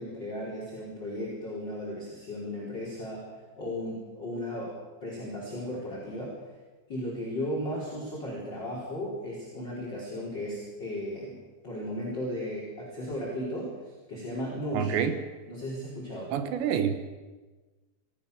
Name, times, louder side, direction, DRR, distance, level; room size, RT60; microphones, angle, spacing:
voice 1, 0.0-3.3 3.6-4.7 5.0-6.3 6.9-11.4 11.6-13.7 14.1-15.1 15.5-16.3, equal, 25° left, 5.4 m, -35 dB
voice 2, 14.7-15.2 16.3-16.9, right 8 dB, 75° right, 3.5 m, -27 dB
28.0 x 15.0 x 7.0 m
omnidirectional pair, 5.3 m